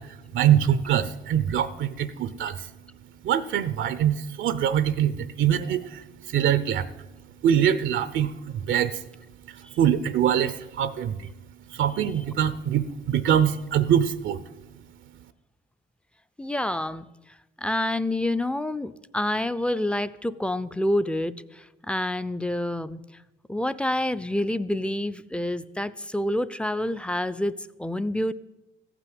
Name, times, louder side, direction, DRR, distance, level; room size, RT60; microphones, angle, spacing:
voice 1, 0.0-2.7 3.2-7.1 7.4-9.0 9.5-11.3 11.7-14.4, right 9 dB, 75° right, 13 dB, 0.7 m, -24 dB
voice 2, 16.4-17.1 17.6-23.0 23.5-28.3, left 1 dB, 5° left, 14 dB, 0.5 m, -28 dB
14.5 x 6.0 x 9.5 m, 1.0 s
cardioid pair, 90°, 20 cm